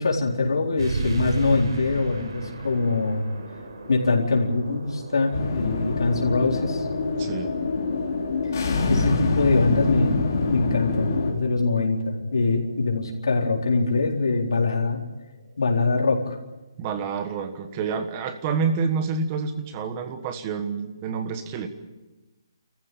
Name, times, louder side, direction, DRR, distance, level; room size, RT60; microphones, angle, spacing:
voice 1, 0.0-3.3 3.9-6.9 8.9-15.0 15.6-16.4, left 3 dB, 90° left, 0 dB, 4.3 m, -23 dB
sound 1, 0.8-15.9, right 3 dB, 90° right, 5.5 m, -37 dB
sound 2, 5.3-11.3, left 3 dB, 40° left, 4.0 m, -25 dB
voice 2, 7.2-7.5 16.8-21.7, right 5 dB, 20° right, 9 dB, 1.4 m, -28 dB
28.5 x 15.0 x 8.9 m, 1.1 s
hypercardioid pair, 175°, 2 cm